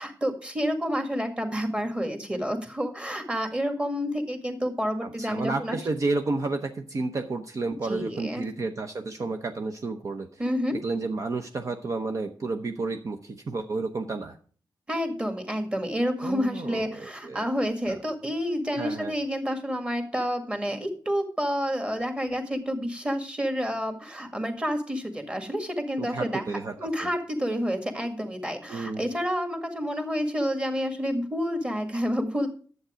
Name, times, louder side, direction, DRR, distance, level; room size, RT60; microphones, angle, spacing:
voice 1, 0.0-5.8 7.9-8.5 10.4-10.8 14.9-26.4 26.8-32.5, equal, 15° right, 5 dB, 1.8 m, -29 dB
voice 2, 5.0-10.4 10.8-14.4 16.2-17.5 17.9-18.0 18.8-19.1 26.0-26.7 27.0-27.1 28.7-29.0, right 3 dB, 45° right, 5 dB, 0.8 m, -31 dB
11.0 x 8.0 x 5.0 m, 0.43 s
wide cardioid pair, 140°, 7 cm